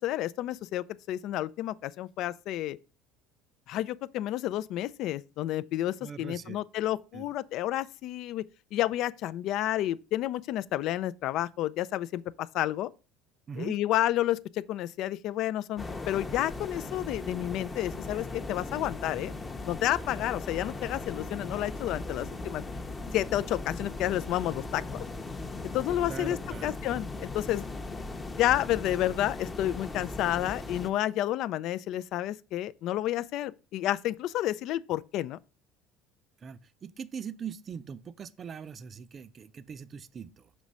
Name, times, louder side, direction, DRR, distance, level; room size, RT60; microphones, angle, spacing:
voice 1, 0.0-2.8 3.7-8.4 8.7-12.9 13.6-19.3 19.7-22.6 23.1-25.0 25.6-27.7 28.4-35.4, left 13 dB, 60° left, 0.3 m, -30 dB
voice 2, 6.0-6.6 7.1-7.3 13.5-13.7 25.9-26.8 36.4-40.5, right 7 dB, 35° right, 0.4 m, -41 dB
sound 1, 15.8-30.9, left 2 dB, 20° left, 0.7 m, -38 dB
6.1 x 3.1 x 5.4 m
supercardioid pair, 105°, 0 cm